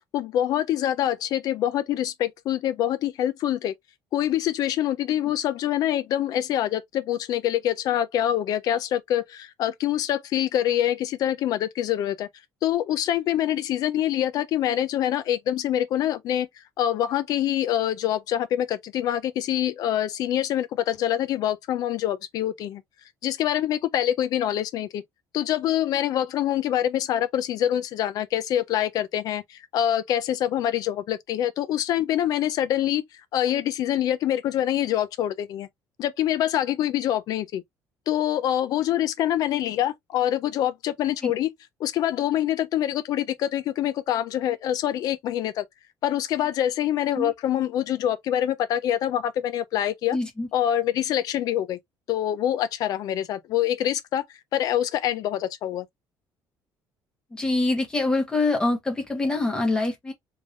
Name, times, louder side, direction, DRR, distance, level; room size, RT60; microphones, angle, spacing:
voice 1, 0.1-3.7 4.1-12.3 12.6-16.5 16.8-22.8 23.2-25.0 25.3-33.0 33.3-35.7 36.0-37.6 38.1-41.5 41.8-45.6 46.0-50.2 50.5-51.8 52.1-54.2 54.5-55.9, left 11 dB, 55° left, 0.6 m, -25 dB
voice 2, 50.1-50.5 57.3-60.1, left 2 dB, 10° left, 1.2 m, -25 dB
3.6 x 3.3 x 2.5 m
cardioid pair, 175°, 8 cm